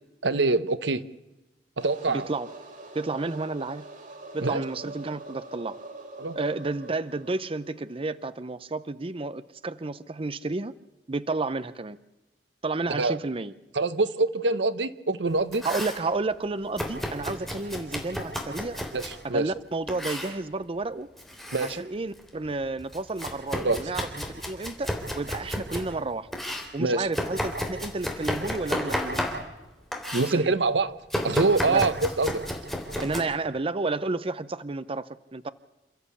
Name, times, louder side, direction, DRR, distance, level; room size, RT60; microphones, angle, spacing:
voice 1, 0.2-1.0 1.8-2.3 4.4-4.6 6.2-6.4 12.9-13.2 13.7-15.6 18.9-19.5 21.5-21.8 23.6-23.9 26.8-27.1 30.1-30.9 31.2-32.4 33.0-33.1, right 3 dB, 85° right, 0.9 m, -25 dB
sound 1, 1.8-8.4, right 2 dB, 50° right, 3.6 m, -44 dB
voice 2, 2.1-2.5 2.9-3.9 4.3-5.8 6.3-10.7 11.1-12.0 12.6-13.5 15.6-18.8 19.2-21.1 21.6-26.3 26.7-29.3 30.3-30.6 31.7-31.8 33.0-35.5, right 3 dB, 30° right, 0.6 m, -31 dB
Domestic sounds home sounds, 15.3-16.0 16.8-19.2 19.9-20.4 21.1-21.8 22.2-25.9 26.3-29.6 29.9-30.4 31.1-33.2, equal, ahead, 3.3 m, -32 dB
28.5 x 13.5 x 8.4 m
head